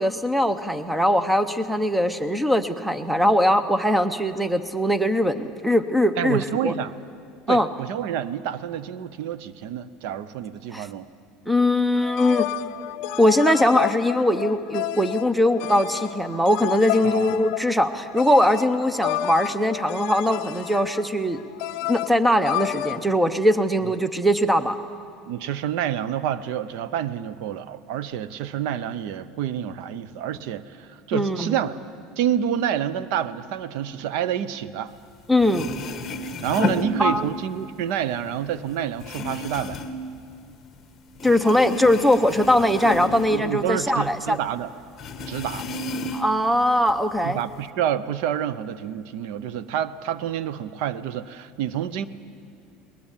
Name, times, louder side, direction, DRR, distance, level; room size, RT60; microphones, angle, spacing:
voice 1, 0.0-6.7 7.5-7.7 10.7-10.9 11.5-12.5 13.2-21.4 21.9-24.8 31.1-31.5 35.3-35.7 37.0-37.3 41.2-44.4 46.1-47.4, left 1 dB, 5° right, 12 dB, 0.7 m, -21 dB
voice 2, 6.2-6.9 7.5-11.1 17.0-17.4 23.8-23.9 25.3-31.8 32.2-34.9 36.4-39.8 43.1-44.7 45.3-45.7 47.2-52.1, right 10 dB, 65° right, 16 dB, 0.7 m, -28 dB
sound 1, 12.0-23.0, left 14 dB, 60° left, 0.5 m, -31 dB
sound 2, 35.1-35.2 35.4-37.6 37.9-40.9 41.1-44.1 44.4-44.5 45.0-46.5 46.8-47.6, left 2 dB, 25° left, 1.3 m, -32 dB
21.0 x 20.0 x 7.4 m, 2.5 s
supercardioid pair, 145°, 0 cm